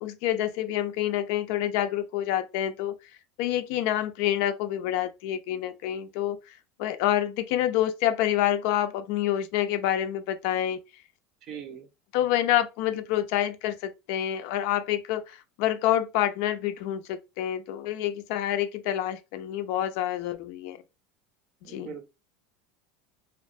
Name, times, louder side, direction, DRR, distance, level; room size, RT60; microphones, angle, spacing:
voice 1, 0.0-2.9 3.4-6.4 6.8-10.8 12.1-20.8 21.7-21.9, left 12 dB, 65° left, 0.4 m, -27 dB
voice 2, 11.5-11.9 21.6-22.1, right 7 dB, 40° right, 0.5 m, -40 dB
2.8 x 2.1 x 2.5 m
supercardioid pair, 150°, 0 cm